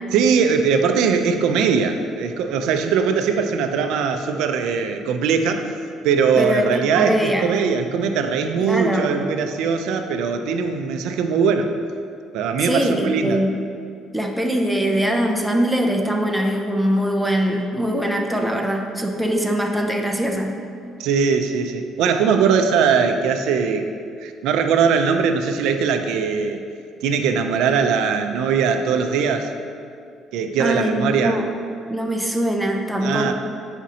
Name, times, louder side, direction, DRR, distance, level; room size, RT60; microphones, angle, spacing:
voice 1, 0.1-5.7 6.0-11.7 12.3-13.5 21.0-23.9 24.2-26.7 27.0-29.5 30.3-31.4 33.0-33.3, right 6 dB, 80° right, 6 dB, 0.4 m, -20 dB
voice 2, 6.4-7.5 8.6-9.1 12.6-13.5 14.1-20.5 30.6-31.5 31.9-33.3, equal, 5° right, 1 dB, 0.4 m, -22 dB
7.4 x 5.0 x 2.8 m, 2.3 s
cardioid pair, 155°, 0 cm